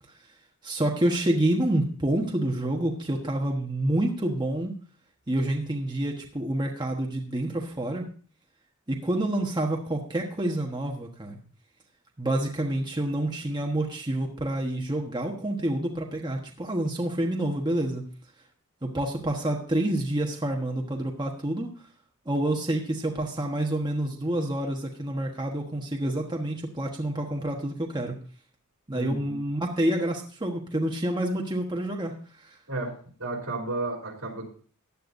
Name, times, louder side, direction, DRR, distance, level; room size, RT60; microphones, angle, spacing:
voice 1, 0.6-4.7 5.3-8.1 8.9-11.4 12.2-18.0 18.8-21.7 22.2-28.2 28.9-32.6, right 1 dB, 20° right, 0 dB, 1.3 m, -28 dB
voice 2, 28.9-29.4 32.7-34.5, right 2 dB, 75° right, -1 dB, 3.4 m, -33 dB
15.5 x 10.0 x 2.6 m, 0.42 s
head